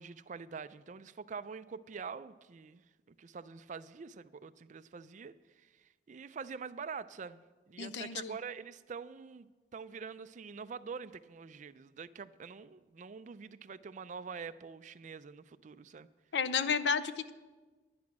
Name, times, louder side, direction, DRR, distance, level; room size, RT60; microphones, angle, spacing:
voice 1, 0.0-16.1, right 5 dB, 45° right, 14 dB, 0.4 m, -45 dB
voice 2, 7.8-8.3 16.3-17.3, left 6 dB, 75° left, 13 dB, 0.6 m, -32 dB
10.5 x 10.5 x 6.0 m, 1.3 s
head